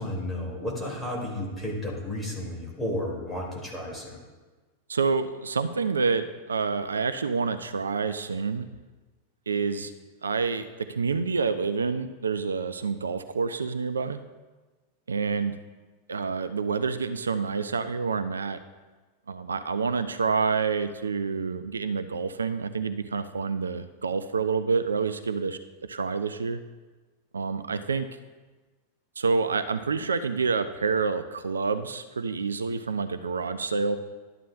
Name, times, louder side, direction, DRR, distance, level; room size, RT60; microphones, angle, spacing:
voice 1, 0.0-4.2, left 1 dB, 10° left, -3 dB, 2.7 m, -32 dB
voice 2, 4.9-8.7 9.5-9.9 10.2-14.2 15.1-15.6 16.1-18.6 19.3-26.6 27.3-28.1 29.2-34.0, right 5 dB, 75° right, 11 dB, 0.4 m, -28 dB
12.0 x 9.0 x 2.4 m, 1.3 s
figure-of-eight pair, 90°, 0 cm